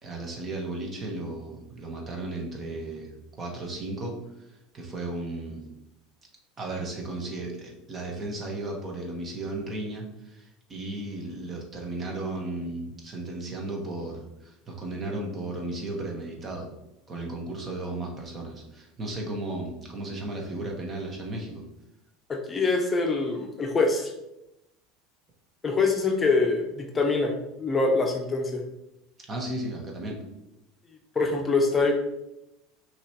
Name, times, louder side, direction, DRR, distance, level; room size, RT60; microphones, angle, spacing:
voice 1, 0.0-4.2 4.5-5.6 6.6-16.7 17.1-21.6 29.3-30.2, right 2 dB, 35° right, 0 dB, 1.3 m, -35 dB
voice 2, 22.3-24.1 25.6-28.6 31.1-31.9, left 3 dB, 25° left, 2 dB, 0.7 m, -24 dB
5.7 x 3.0 x 3.0 m, 0.90 s
hypercardioid pair, 85°, 0 cm